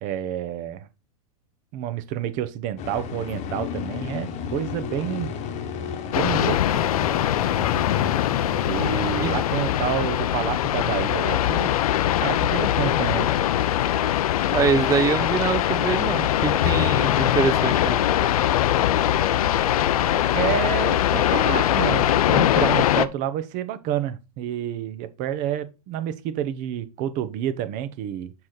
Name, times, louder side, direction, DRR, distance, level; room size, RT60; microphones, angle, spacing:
voice 1, 0.0-0.9 1.7-5.4 6.1-6.8 8.7-11.7 12.2-13.3 20.3-28.3, right 11 dB, 40° right, 1.0 m, -29 dB
sound 1, 2.8-9.9, left 6 dB, 35° left, 1.2 m, -32 dB
sound 2, 6.1-23.1, left 12 dB, 70° left, 0.6 m, -22 dB
voice 2, 14.5-18.0, right 6 dB, 15° right, 0.6 m, -24 dB
7.2 x 4.9 x 4.0 m
hypercardioid pair, 110°, 20 cm